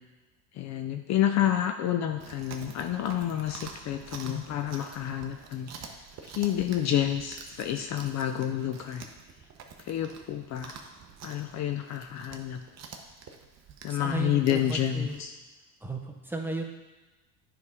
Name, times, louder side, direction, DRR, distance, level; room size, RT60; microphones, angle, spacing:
voice 1, 0.5-5.9 6.2-9.1 9.8-10.8 11.2-12.6 13.8-15.3, left 11 dB, 40° left, 7 dB, 0.5 m, -29 dB
Chewing mastication, 2.2-15.2, right 5 dB, 40° right, 0.9 m, -48 dB
voice 2, 13.9-15.2 15.8-16.7, right 3 dB, 5° right, 1 dB, 0.7 m, -35 dB
9.6 x 3.7 x 4.8 m, 1.2 s
supercardioid pair, 115°, 42 cm